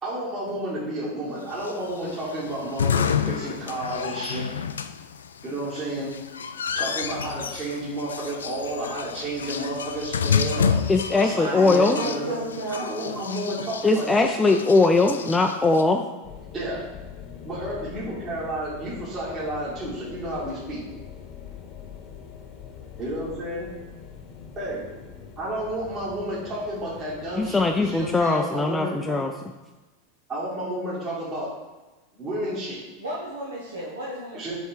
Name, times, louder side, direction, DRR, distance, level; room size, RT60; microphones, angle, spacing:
voice 1, 0.0-4.5 5.4-6.1 6.7-12.4 12.7-14.2 16.5-16.8 17.4-20.8 23.0-23.7 24.6-24.8 25.4-29.2 30.3-31.5 32.1-32.8 34.3-34.5, right 1 dB, 35° right, -8 dB, 2.1 m, -31 dB
sound 1, 1.5-15.8, left 6 dB, 85° left, 0.3 m, -30 dB
voice 2, 10.9-12.0 13.8-16.0 27.4-29.3, left 3 dB, 15° left, 3 dB, 0.4 m, -20 dB
voice 3, 11.5-13.6 33.0-34.5, right 1 dB, 85° right, -5 dB, 1.1 m, -34 dB
sound 2, 16.2-28.2, left 7 dB, 45° left, 1.0 m, -43 dB
7.1 x 3.5 x 4.5 m, 1.1 s
hypercardioid pair, 95°, 0 cm